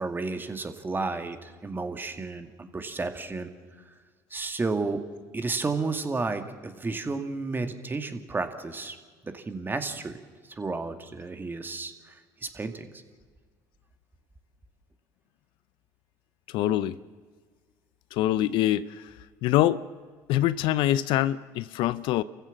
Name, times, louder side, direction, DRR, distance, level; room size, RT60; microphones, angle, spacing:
voice 1, 0.0-3.5 4.3-5.0 5.3-9.0 9.2-10.2 10.6-12.2 12.4-12.9, right 3 dB, 25° right, 7 dB, 2.2 m, -32 dB
voice 2, 16.5-17.0 18.1-19.0 19.4-19.8 20.3-22.2, left 13 dB, 65° left, 16 dB, 0.6 m, -24 dB
28.0 x 15.0 x 7.4 m, 1.5 s
hypercardioid pair, 70°, 9 cm